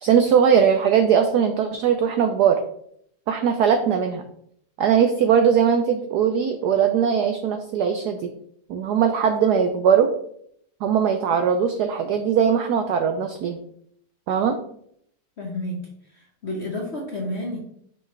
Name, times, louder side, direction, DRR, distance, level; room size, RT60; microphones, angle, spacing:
voice 1, 0.0-2.6 3.3-4.2 4.8-8.3 8.7-10.1 10.8-13.6 14.3-14.6, right 7 dB, 85° right, 7 dB, 0.8 m, -20 dB
voice 2, 15.4-15.8 16.1-17.6, left 1 dB, 50° left, 0 dB, 0.8 m, -30 dB
5.6 x 5.3 x 3.2 m, 0.69 s
omnidirectional pair, 2.3 m